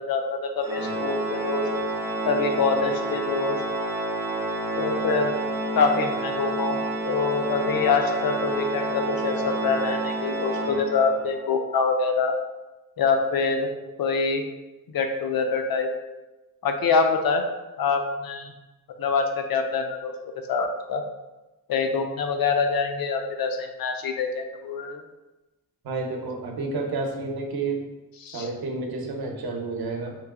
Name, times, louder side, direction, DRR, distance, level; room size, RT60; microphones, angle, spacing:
voice 1, 0.0-1.6 2.3-3.6 4.8-5.3 5.8-6.8 7.0-12.3 13.0-13.7 14.0-14.5 14.9-15.9 16.6-17.4 17.8-18.5 19.0-20.1 20.5-21.0 21.7-25.0 28.2-28.5, left 4 dB, 70° left, 5 dB, 0.5 m, -25 dB
Organ, 0.6-11.3, right 2 dB, 10° right, 0.4 m, -29 dB
voice 2, 25.8-27.8 28.3-30.2, right 3 dB, 80° right, 2 dB, 0.7 m, -30 dB
3.0 x 2.9 x 3.5 m, 1.1 s
wide cardioid pair, 175°, 37 cm